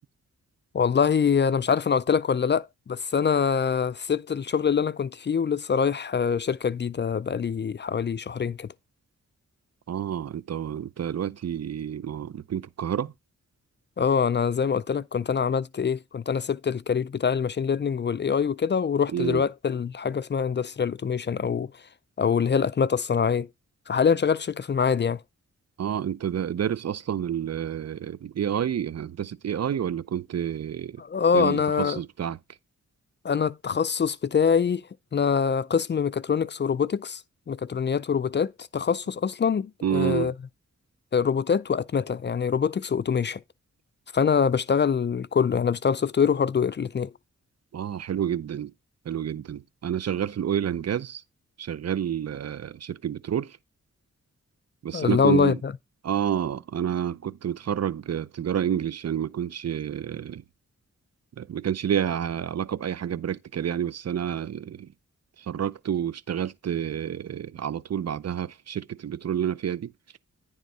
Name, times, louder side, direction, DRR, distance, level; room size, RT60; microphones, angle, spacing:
voice 1, 0.7-8.7 14.0-21.7 22.2-23.5 23.9-25.2 31.0-32.0 33.2-34.9 35.1-37.2 37.5-40.3 41.1-43.4 44.1-47.1 54.9-55.7, left 6 dB, 40° left, 0.4 m, -24 dB
voice 2, 9.9-13.1 19.1-19.4 25.8-30.9 31.3-32.4 39.8-40.3 47.7-48.7 49.1-51.2 51.6-53.5 54.8-55.6 56.0-60.4 61.4-64.9 65.5-69.9, right 9 dB, 60° right, 0.5 m, -29 dB
10.0 x 3.6 x 5.3 m
cardioid pair, 50°, 30 cm